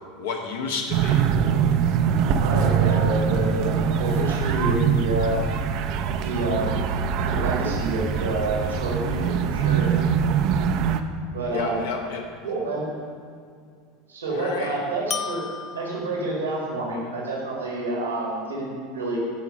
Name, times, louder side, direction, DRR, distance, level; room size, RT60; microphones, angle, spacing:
voice 1, 0.2-1.2 11.5-12.2 14.3-14.8, left 5 dB, 70° left, 1 dB, 1.2 m, -30 dB
sound 1, 0.9-11.0, right 7 dB, 55° right, 0.5 m, -23 dB
voice 2, 2.3-3.7 4.0-5.4 6.2-6.8 7.2-9.9 11.3-11.9 12.4-12.9 14.1-15.4 15.7-19.2, right 2 dB, 80° right, -3 dB, 1.7 m, -28 dB
sound 2, 11.5-12.2 15.1-16.5, left 6 dB, 35° left, 0.4 m, -35 dB
11.5 x 4.5 x 5.3 m, 2.2 s
figure-of-eight pair, 75°, 0 cm